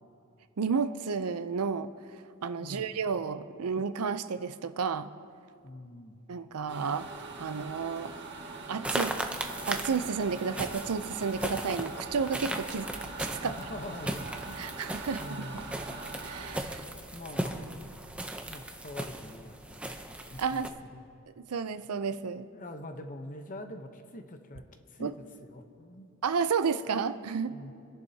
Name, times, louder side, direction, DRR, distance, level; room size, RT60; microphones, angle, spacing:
voice 1, 0.6-1.9 2.4-5.1 6.3-7.1 7.4-8.1 8.7-9.2 9.7-12.9 13.3-13.6 14.6-15.4 16.2-16.6 20.4-20.8 21.4-22.5 25.0-25.1 26.2-27.6, right 5 dB, 90° right, 12 dB, 0.5 m, -31 dB
voice 2, 2.6-2.9 5.6-6.2 13.4-14.6 15.2-15.8 16.6-16.8 17.1-17.9 18.5-19.8 20.3-21.0 22.5-24.6 24.9-25.1 25.4-26.1 27.5-27.7, left 1 dB, 35° left, 6 dB, 0.9 m, -44 dB
sound 1, 6.7-16.6, right 3 dB, 50° right, 1.5 m, -43 dB
sound 2, 8.8-20.7, right 1 dB, 5° right, 0.6 m, -37 dB
sound 3, 9.0-16.4, equal, 15° left, 3.3 m, -56 dB
27.5 x 11.0 x 2.8 m, 2.5 s
head